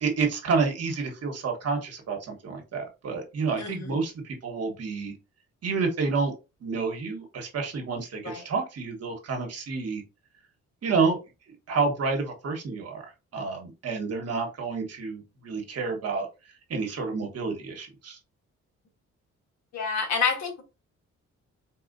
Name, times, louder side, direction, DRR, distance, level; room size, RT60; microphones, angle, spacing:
voice 1, 0.0-5.1 5.6-6.3 6.6-10.0 10.8-11.2 11.7-13.0 13.3-16.3 16.7-18.2, right 4 dB, 55° right, 3 dB, 1.3 m, -29 dB
voice 2, 3.6-4.0 8.2-8.4 19.7-20.6, left 5 dB, 65° left, 2 dB, 1.4 m, -28 dB
4.4 x 2.4 x 2.6 m, 0.28 s
cardioid pair, 90°, 30 cm